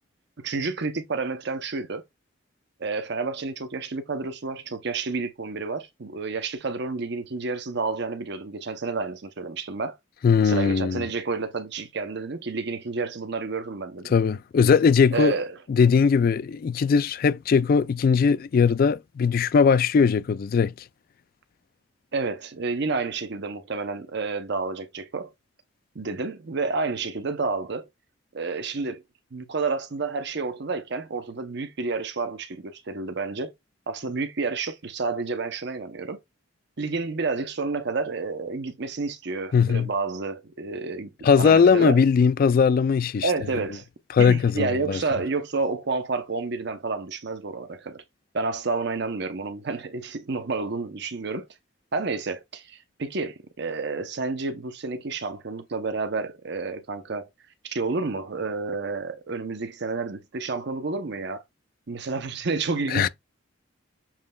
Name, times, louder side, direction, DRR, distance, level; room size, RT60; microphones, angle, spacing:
voice 1, 0.4-2.0 2.8-10.0 10.4-14.1 15.1-15.5 22.1-25.3 25.9-27.9 28.3-29.0 29.3-33.5 33.9-36.2 36.8-41.1 41.4-42.0 43.2-43.9 44.2-48.0 48.3-51.5 51.9-57.3 57.6-61.4 61.9-63.1, right 4 dB, 60° right, 0.8 m, -30 dB
voice 2, 10.2-11.1 14.1-15.4 15.7-20.7 39.5-39.9 41.2-43.3 44.1-45.0 62.9-63.1, left 6 dB, 45° left, 0.3 m, -20 dB
7.2 x 3.2 x 2.3 m
head